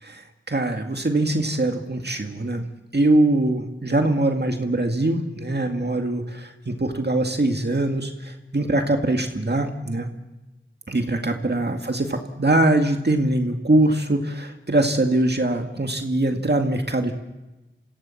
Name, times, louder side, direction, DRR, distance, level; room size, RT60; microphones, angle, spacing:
voice 1, 0.0-2.7 2.9-10.1 10.9-17.1, right 2 dB, 55° right, 4 dB, 2.1 m, -22 dB
26.0 x 16.0 x 7.2 m, 1.1 s
wide cardioid pair, 40°, 20 cm